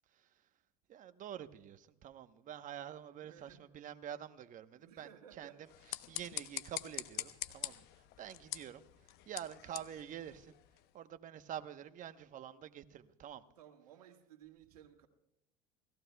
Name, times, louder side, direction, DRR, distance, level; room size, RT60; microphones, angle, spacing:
voice 1, 0.9-5.1 5.4-5.5 6.1-8.8 9.3-10.5 10.9-13.4, right 10 dB, 45° right, 1.0 m, -47 dB
voice 2, 3.1-3.7 4.7-5.8 13.6-15.1, right 9 dB, 85° right, 1.7 m, -58 dB
sound 1, 5.6-10.9, left 15 dB, 60° left, 0.9 m, -45 dB
29.0 x 17.5 x 2.3 m
hypercardioid pair, 85°, 19 cm